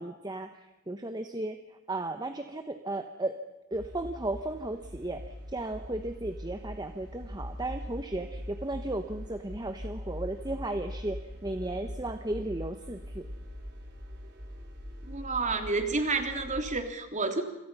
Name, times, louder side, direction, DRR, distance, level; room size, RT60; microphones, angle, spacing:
voice 1, 0.0-3.4 3.7-13.3, right 2 dB, 20° right, 7 dB, 1.2 m, -35 dB
sound 1, 3.7-16.7, equal, 55° right, 4.7 m, -42 dB
voice 2, 15.1-17.4, right 3 dB, 35° right, 6 dB, 3.4 m, -30 dB
28.0 x 27.5 x 5.6 m, 1.0 s
head